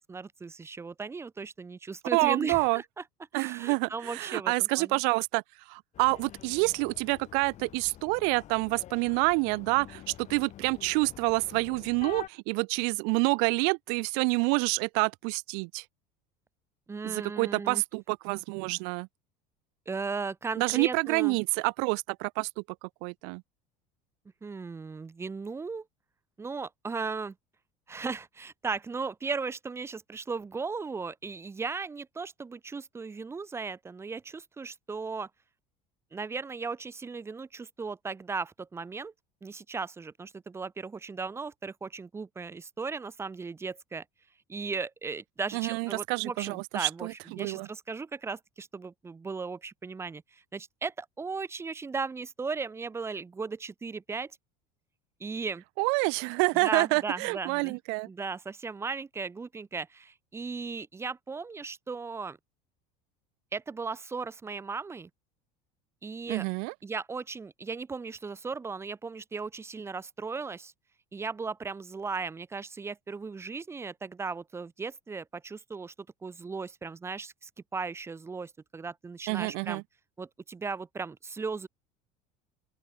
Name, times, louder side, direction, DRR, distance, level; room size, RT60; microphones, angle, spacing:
voice 1, 0.0-3.0 3.3-5.0 16.9-17.8 19.9-21.4 24.4-25.8 26.4-27.3 27.9-35.3 36.1-39.1 39.4-44.0 44.5-54.3 55.2-55.6 56.6-57.8 58.1-62.4 63.5-65.1 66.0-66.4 66.8-70.7 71.1-75.9 76.2-79.8 80.2-81.7, right 4 dB, 15° right, 1.2 m, -37 dB
voice 2, 2.1-2.8 3.3-5.4 5.7-15.8 17.0-19.1 20.6-23.4 45.5-47.7 55.8-58.1 66.3-66.7 79.3-79.8, right 40 dB or more, 70° right, 1.4 m, -28 dB
sound 1, 5.9-12.3, left 12 dB, 40° left, 2.4 m, -47 dB
open air
supercardioid pair, 135°, 18 cm